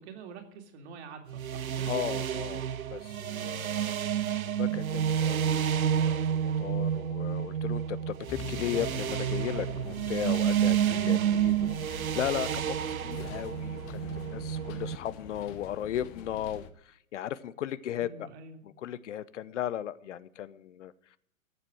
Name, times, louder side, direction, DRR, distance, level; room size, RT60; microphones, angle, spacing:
voice 1, 0.0-1.9 3.3-3.7 10.8-11.6 17.9-18.6, right 5 dB, 55° right, 4 dB, 3.2 m, -46 dB
sound 1, 1.3-15.0, right 9 dB, 90° right, 0.6 m, -30 dB
voice 2, 1.9-2.6 2.9-4.0 4.6-18.3 18.6-21.2, left 11 dB, 60° left, 17 dB, 0.9 m, -36 dB
sound 2, 8.3-16.7, left 8 dB, 35° left, 1.3 m, -45 dB
14.0 x 7.5 x 7.9 m, 0.68 s
hypercardioid pair, 115°, 41 cm